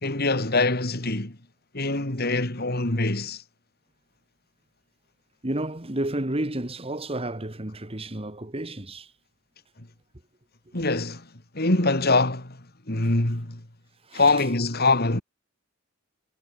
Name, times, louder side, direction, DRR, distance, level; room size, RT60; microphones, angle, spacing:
voice 1, 0.0-1.4 1.7-3.4 10.7-11.3 11.5-12.6 12.9-13.6 14.1-15.2, left 3 dB, 50° left, 3.1 m, -24 dB
voice 2, 5.4-9.1 14.1-14.3, right 1 dB, 30° right, 2.0 m, -31 dB
head